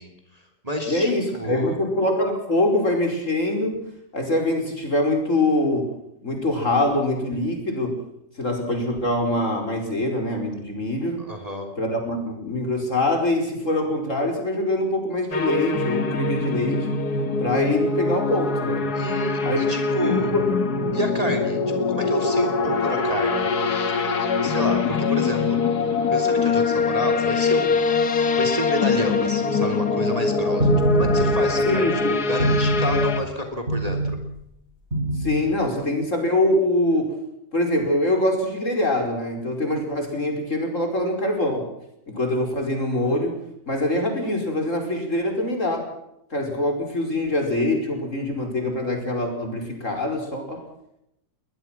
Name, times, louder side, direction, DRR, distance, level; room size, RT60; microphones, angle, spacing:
voice 1, 0.0-1.8 11.2-11.7 18.9-20.3 20.9-23.5 24.0-24.1 24.4-25.6 26.1-27.9 28.4-34.2, equal, 20° right, 5 dB, 3.4 m, -29 dB
voice 2, 0.9-3.9 4.1-5.9 6.2-7.9 8.4-11.2 11.8-16.9 17.4-18.9 19.4-19.7 20.0-20.5 31.7-32.5 35.2-37.2 37.5-41.7 42.1-43.4 43.7-45.9 46.3-50.6, left 1 dB, 45° left, 3 dB, 5.5 m, -24 dB
sound 1, 15.3-33.2, left 4 dB, 65° left, 2.1 m, -23 dB
sound 2, 30.6-31.7 32.4-33.3 33.7-34.3 34.9-35.6, right 1 dB, 40° right, 7.1 m, -23 dB
22.0 x 21.5 x 6.1 m, 0.80 s
omnidirectional pair, 1.8 m